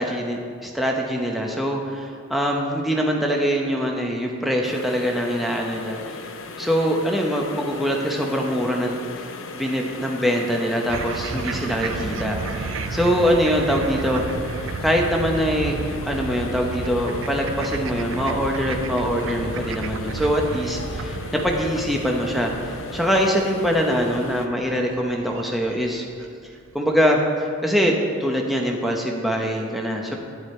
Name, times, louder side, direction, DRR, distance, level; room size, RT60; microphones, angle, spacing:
voice 1, 0.0-6.3 6.6-9.3 9.5-14.2 14.8-15.8 16.1-26.0 26.7-30.1, equal, ahead, 0 dB, 0.8 m, -23 dB
sound 1, 4.6-24.5, left 3 dB, 70° left, 0.7 m, -37 dB
sound 2, 10.9-26.3, right 4 dB, 65° right, 0.5 m, -32 dB
9.8 x 9.4 x 4.2 m, 2.3 s
head